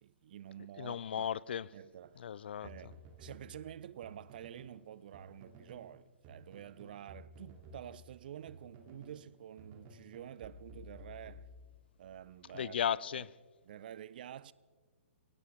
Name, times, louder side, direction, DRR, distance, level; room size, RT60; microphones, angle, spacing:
voice 1, 0.0-1.3 1.7-2.2 2.6-11.5 12.0-12.8 13.1-13.3 13.6-14.5, right 10 dB, 45° right, 0.5 m, -49 dB
voice 2, 0.8-1.7 2.2-2.7 12.5-13.3, left 8 dB, 55° left, 0.4 m, -35 dB
sound 1, 2.6-4.8 5.1-5.9 6.2-9.2 9.6-12.0, equal, 30° right, 2.4 m, -54 dB
22.5 x 18.0 x 3.5 m
figure-of-eight pair, 125°, 7 cm